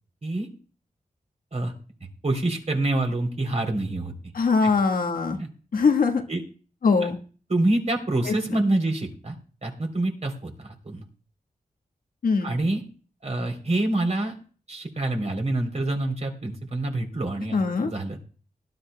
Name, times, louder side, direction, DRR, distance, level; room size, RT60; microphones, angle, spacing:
voice 1, 2.2-4.1 4.6-4.7 5.4-5.5 6.3-6.4 7.0-7.1 7.5-9.3 9.6-11.0 12.4-12.8 13.2-14.3 14.7-18.2, right 2 dB, 50° right, 3 dB, 3.3 m, -26 dB
voice 2, 4.3-5.4 5.7-6.2 6.8-7.2 8.2-8.3 12.2-12.5 17.5-17.9, left 4 dB, 85° left, 4 dB, 1.4 m, -22 dB
19.5 x 11.5 x 2.2 m, 0.40 s
cardioid pair, 65°, 14 cm